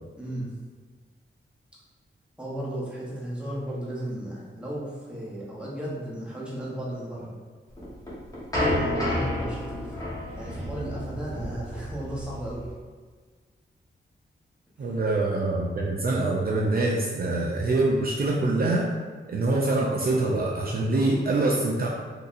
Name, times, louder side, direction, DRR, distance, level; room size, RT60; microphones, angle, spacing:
voice 1, 0.2-0.5 2.4-7.3 8.6-10.0 10.3-12.6 14.8-14.9, right 1 dB, 5° right, -6 dB, 0.9 m, -35 dB
sound 1, 7.8-12.7, left 1 dB, 15° left, 1.0 m, -30 dB
voice 2, 14.8-18.9 19.3-21.9, right 2 dB, 50° right, -3 dB, 0.4 m, -24 dB
3.9 x 2.8 x 2.5 m, 1.5 s
wide cardioid pair, 115°, 21 cm